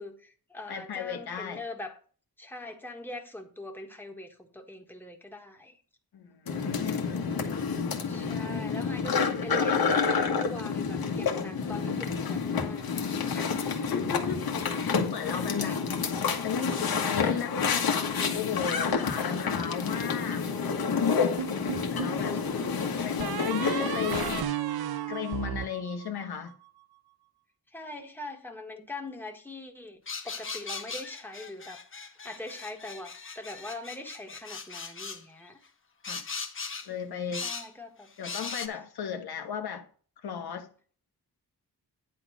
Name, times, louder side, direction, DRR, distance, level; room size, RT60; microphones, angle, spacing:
voice 1, 0.0-2.0 2.4-5.8 7.5-13.9 15.3-15.8 22.1-23.1 27.7-31.8 32.2-35.6 37.4-38.1 38.7-38.8, left 2 dB, 5° left, 1.5 m, -43 dB
voice 2, 0.7-1.6 6.1-7.3 13.7-14.4 14.8-15.8 16.4-18.1 18.3-20.5 21.9-22.4 23.0-24.4 25.1-26.6 36.1-36.3 36.8-37.5 38.2-39.9 40.2-40.7, left 7 dB, 85° left, 1.4 m, -35 dB
sound 1, 6.5-24.4, left 5 dB, 70° left, 1.6 m, -29 dB
sound 2, 21.4-22.2 23.2-26.5, right 10 dB, 80° right, 0.8 m, -34 dB
sound 3, 30.1-35.2 36.0-36.9 37.3-37.7 38.2-38.7, left 5 dB, 35° left, 1.1 m, -39 dB
9.9 x 4.2 x 6.1 m
wide cardioid pair, 110°, 37 cm